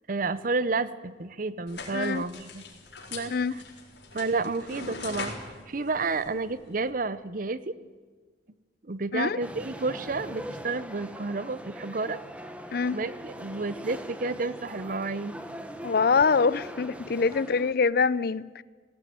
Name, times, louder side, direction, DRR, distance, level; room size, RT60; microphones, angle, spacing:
voice 1, 0.1-2.7 3.1-3.6 4.1-7.8 8.8-12.2 12.9-15.4, right 3 dB, 50° right, 15 dB, 0.8 m, -31 dB
sound 1, 1.7-6.9, left 3 dB, 85° left, 4.5 m, -42 dB
voice 2, 1.9-2.2 3.3-3.5 9.1-9.4 12.7-13.0 15.8-18.6, left 5 dB, 60° left, 19 dB, 0.5 m, -24 dB
sound 2, 9.4-17.7, equal, 10° right, 1.4 m, -41 dB
19.0 x 16.0 x 9.4 m, 1.5 s
head